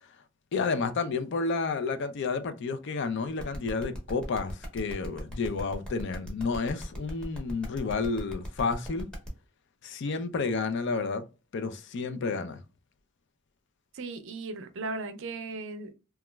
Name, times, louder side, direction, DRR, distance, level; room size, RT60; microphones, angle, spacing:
voice 1, 0.5-9.1 9.8-11.2 11.5-12.6, left 4 dB, 60° left, 0.4 m, -31 dB
sound 1, 3.4-9.3, equal, 5° left, 0.8 m, -42 dB
voice 2, 13.9-15.9, right 3 dB, 65° right, 0.5 m, -37 dB
2.9 x 2.3 x 2.2 m
head